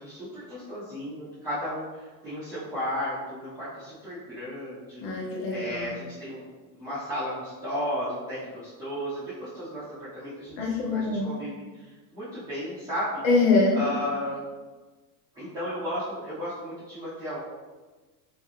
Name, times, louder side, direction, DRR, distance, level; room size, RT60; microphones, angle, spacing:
voice 1, 0.0-1.8 2.2-5.0 5.5-6.4 6.8-8.4 8.8-9.8 10.1-10.5 10.9-11.5 12.1-13.1 13.7-14.4 15.4-17.4, equal, 5° right, -15 dB, 1.3 m, -33 dB
voice 2, 5.0-5.9 10.6-11.3 13.2-13.8, left 3 dB, 45° left, -2 dB, 1.1 m, -24 dB
3.4 x 3.1 x 3.4 m, 1.3 s
supercardioid pair, 145°, 49 cm